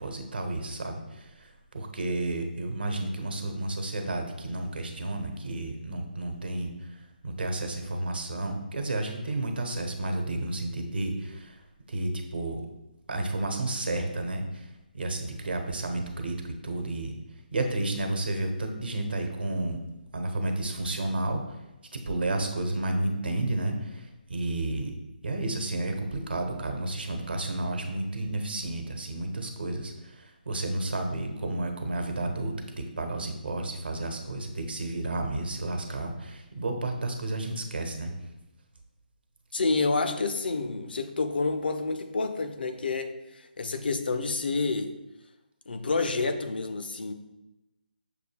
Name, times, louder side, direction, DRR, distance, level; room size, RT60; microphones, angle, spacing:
voice 1, 0.0-12.7 13.1-17.1 17.5-19.8 20.1-21.6 21.9-24.9 25.2-38.1, right 2 dB, 85° right, 4 dB, 1.0 m, -32 dB
voice 2, 39.5-44.9 45.7-47.1, left 3 dB, 75° left, 8 dB, 0.6 m, -29 dB
6.7 x 2.3 x 3.3 m, 0.97 s
figure-of-eight pair, 155°, 5 cm